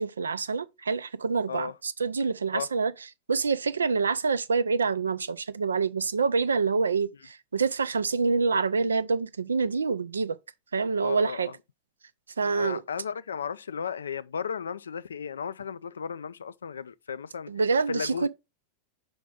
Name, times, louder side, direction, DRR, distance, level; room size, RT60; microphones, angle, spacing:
voice 1, 0.0-2.9 3.3-10.4 10.7-11.5 12.4-12.8 17.5-18.3, right 4 dB, 75° right, 0.5 m, -26 dB
voice 2, 11.0-11.5 12.5-17.5 17.9-18.3, left 7 dB, 70° left, 0.4 m, -35 dB
6.9 x 5.1 x 3.6 m
figure-of-eight pair, 90°, 0 cm